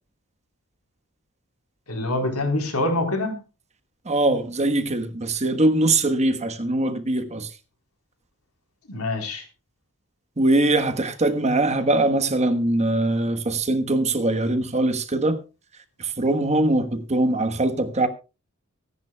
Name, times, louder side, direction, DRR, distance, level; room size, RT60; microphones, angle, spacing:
voice 1, 1.9-3.4 8.9-9.5, left 2 dB, 80° left, 4.0 m, -25 dB
voice 2, 4.0-7.5 10.4-15.4 16.0-18.1, right 2 dB, 30° right, 1.3 m, -22 dB
23.5 x 11.0 x 2.3 m
head